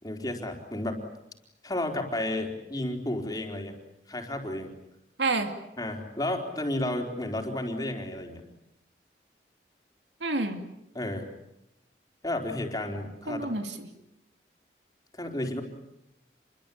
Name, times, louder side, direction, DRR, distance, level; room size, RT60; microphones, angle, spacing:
voice 1, 0.0-1.0 1.6-3.8 4.1-4.7 5.8-8.4 10.9-11.3 12.2-13.5 15.1-15.6, left 1 dB, 20° left, 2 dB, 4.1 m, -32 dB
voice 2, 5.2-5.5 10.2-10.6 13.3-13.9, right 3 dB, 85° right, 6 dB, 2.6 m, -28 dB
28.5 x 23.5 x 8.6 m, 0.84 s
head